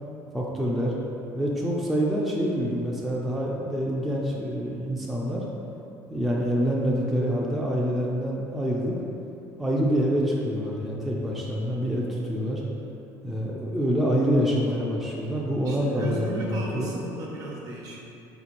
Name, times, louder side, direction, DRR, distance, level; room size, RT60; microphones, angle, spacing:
voice 1, 0.3-0.9 1.3-5.4 6.1-9.0 9.6-12.6 13.2-16.9, equal, ahead, -4 dB, 0.4 m, -26 dB
voice 2, 15.6-18.0, right 1 dB, 50° right, -3 dB, 0.8 m, -35 dB
3.8 x 2.9 x 2.5 m, 2.9 s
supercardioid pair, 90°, 8 cm